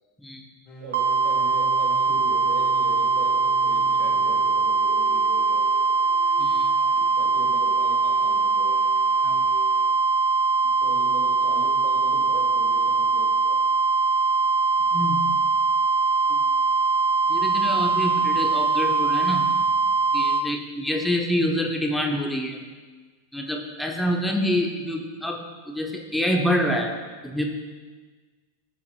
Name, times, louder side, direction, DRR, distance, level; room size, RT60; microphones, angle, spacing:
sound 1, 0.7-9.9, left 1 dB, 35° left, 2.2 m, -45 dB
voice 1, 0.8-5.9 6.9-8.8 10.6-13.6, right 3 dB, 45° right, -1 dB, 2.5 m, -40 dB
sound 2, 0.9-20.4, right 4 dB, 60° right, 0.5 m, -22 dB
voice 2, 6.4-6.7 9.2-9.4 14.9-15.3 16.3-16.4 17.3-19.5 20.1-22.6 23.3-26.9 27.2-27.4, equal, 5° left, 1 dB, 1.0 m, -26 dB
14.5 x 6.9 x 2.4 m, 1.4 s
figure-of-eight pair, 90°, 0 cm